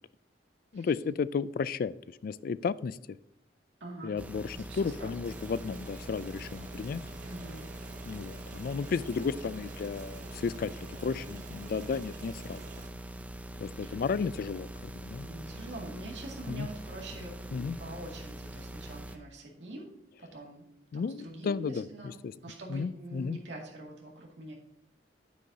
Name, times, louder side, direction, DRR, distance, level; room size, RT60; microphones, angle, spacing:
voice 1, 0.7-3.2 4.0-7.0 8.1-10.7 11.0-12.6 13.6-15.3 16.5-16.7 17.5-17.8 20.9-22.3 22.7-23.4, left 5 dB, 55° left, 18 dB, 0.3 m, -33 dB
voice 2, 3.8-4.2 4.5-5.3 7.2-7.7 13.7-14.0 15.2-19.9 20.2-20.6 20.9-24.5, right 1 dB, 80° right, -1 dB, 2.3 m, -45 dB
sound 1, 4.2-19.2, right 1 dB, 10° right, 0.5 m, -43 dB
sound 2, 5.2-12.9, right 3 dB, 45° right, 0.8 m, -50 dB
9.4 x 9.1 x 2.8 m, 0.79 s
head